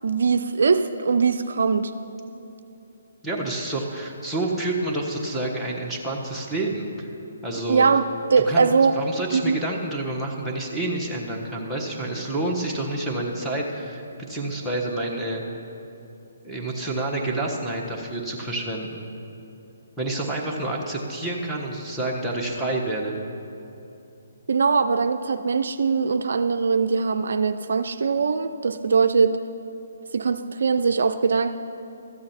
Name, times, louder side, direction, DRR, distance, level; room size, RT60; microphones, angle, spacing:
voice 1, 0.0-1.9 7.7-8.0 8.3-8.9 9.3-9.6 24.5-29.4 30.1-31.6, right 5 dB, 65° right, 9 dB, 0.3 m, -21 dB
voice 2, 3.2-7.1 7.4-7.8 8.5-8.7 9.0-14.0 14.3-15.4 16.4-19.1 20.0-23.2, right 2 dB, ahead, -5 dB, 1.2 m, -28 dB
13.0 x 7.6 x 4.3 m, 2.8 s
figure-of-eight pair, 140°, 0 cm